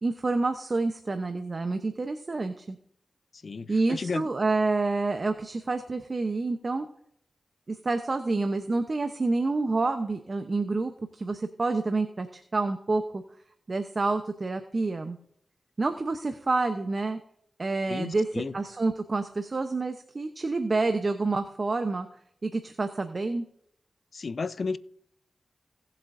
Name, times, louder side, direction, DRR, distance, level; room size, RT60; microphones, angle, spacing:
voice 1, 0.0-2.8 3.7-6.9 7.7-13.2 13.7-15.2 15.8-17.2 17.6-22.1 22.4-23.4, right 3 dB, 50° right, 0.9 m, -28 dB
voice 2, 3.4-4.3 17.9-18.5 24.1-24.8, left 4 dB, 65° left, 0.5 m, -33 dB
18.5 x 7.5 x 2.7 m
cardioid pair, 45°, 0 cm